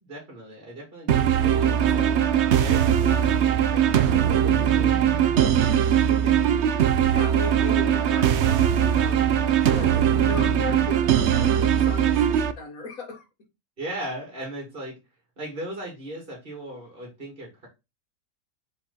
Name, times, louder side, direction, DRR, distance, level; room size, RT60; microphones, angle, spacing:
voice 1, 0.1-5.1 5.4-6.3 13.8-15.0 15.4-17.7, right 1 dB, 35° right, 2.7 m, -38 dB
sound 1, 1.1-12.5, right 9 dB, 65° right, 0.7 m, -20 dB
voice 2, 7.1-13.3, left 3 dB, 60° left, 1.8 m, -37 dB
5.1 x 4.6 x 4.1 m
omnidirectional pair, 1.7 m